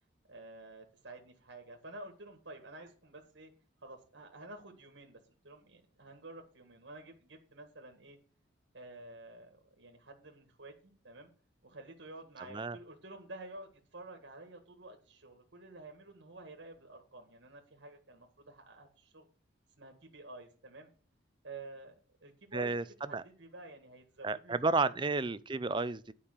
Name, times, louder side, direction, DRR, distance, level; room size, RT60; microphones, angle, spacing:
voice 1, 0.3-3.5 3.8-5.2 5.4-8.2 8.7-11.3 11.6-19.3 19.8-20.9 21.4-22.8 23.0-24.9, right 2 dB, 65° right, 1.8 m, -50 dB
voice 2, 22.5-22.8 23.1-23.2 24.2-26.1, right 3 dB, 25° right, 0.5 m, -32 dB
10.0 x 5.4 x 8.2 m
head